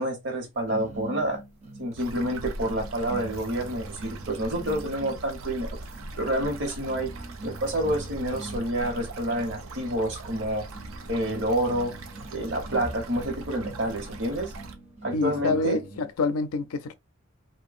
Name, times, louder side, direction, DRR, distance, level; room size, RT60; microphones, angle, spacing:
voice 1, 0.0-1.4 1.8-5.8 6.2-7.1 7.4-10.7 11.1-11.9 12.3-14.5 15.0-15.8, right 1 dB, 60° right, 0.9 m, -28 dB
sound 1, 0.7-16.1, right 2 dB, 30° right, 0.6 m, -43 dB
sound 2, 2.0-14.8, right 2 dB, 80° right, 0.5 m, -41 dB
voice 2, 15.1-16.9, left 3 dB, 85° left, 0.4 m, -27 dB
2.7 x 2.2 x 2.4 m
head